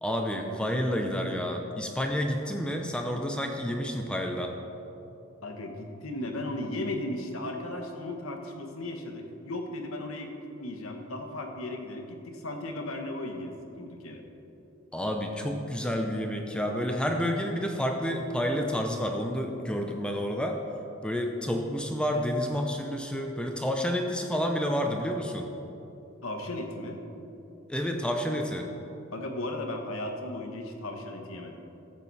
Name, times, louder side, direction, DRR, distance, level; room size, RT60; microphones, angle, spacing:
voice 1, 0.0-4.5 14.9-20.6 21.0-25.5 27.7-28.7, equal, 5° left, 2 dB, 0.6 m, -29 dB
voice 2, 5.4-14.2 26.2-27.0 29.1-31.6, left 1 dB, 80° left, 3 dB, 1.2 m, -36 dB
13.5 x 7.6 x 4.1 m, 2.9 s
head